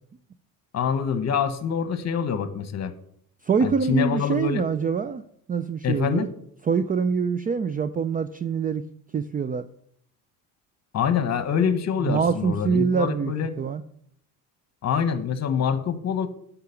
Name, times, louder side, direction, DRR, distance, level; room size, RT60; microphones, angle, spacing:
voice 1, 0.7-2.9 3.6-4.7 5.8-6.3 10.9-13.5 14.8-16.3, left 7 dB, 40° left, 11 dB, 1.3 m, -25 dB
voice 2, 3.4-5.2 5.5-6.3 6.7-8.8 9.1-9.7 12.0-13.8, right 6 dB, 20° right, 13 dB, 0.4 m, -25 dB
10.5 x 6.0 x 7.0 m, 0.68 s
cardioid pair, 105°, 39 cm